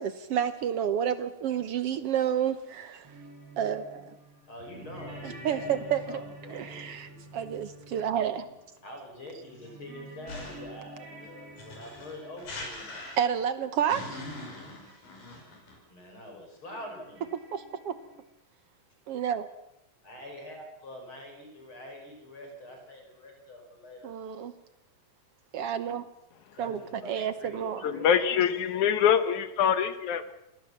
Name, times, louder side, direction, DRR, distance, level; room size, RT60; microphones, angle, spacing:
voice 1, 0.0-3.1 3.6-4.1 5.4-6.2 6.5-8.5 13.2-14.0 17.5-17.9 19.1-19.5 24.0-24.5 25.5-26.1 26.6-27.8, right 9 dB, 75° right, 12 dB, 1.4 m, -30 dB
sound 1, 3.0-9.1 9.4-13.5 14.9-15.0 15.2-15.3 16.7-18.2, right 1 dB, 45° right, 6.7 m, -48 dB
voice 2, 4.5-7.2 8.8-12.9 15.9-17.3 20.0-24.1 26.5-27.1 27.4-28.6, left 1 dB, 35° left, 3 dB, 6.5 m, -45 dB
sound 2, 10.3-10.8 11.6-13.5 13.9-15.8, left 2 dB, 85° left, 7.7 m, -41 dB
voice 3, 27.8-30.3, left 8 dB, 65° left, 12 dB, 2.5 m, -24 dB
27.5 x 18.5 x 7.3 m, 0.88 s
omnidirectional pair, 3.9 m